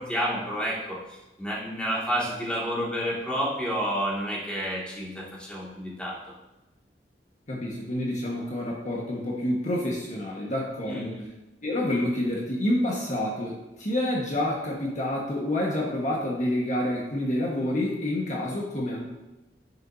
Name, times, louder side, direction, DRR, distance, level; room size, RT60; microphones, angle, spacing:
voice 1, 0.0-6.2 10.9-11.2, equal, 5° left, -6 dB, 2.2 m, -30 dB
voice 2, 7.5-11.1 11.6-19.0, left 1 dB, 45° left, -3 dB, 1.5 m, -28 dB
10.5 x 8.8 x 2.8 m, 1.0 s
head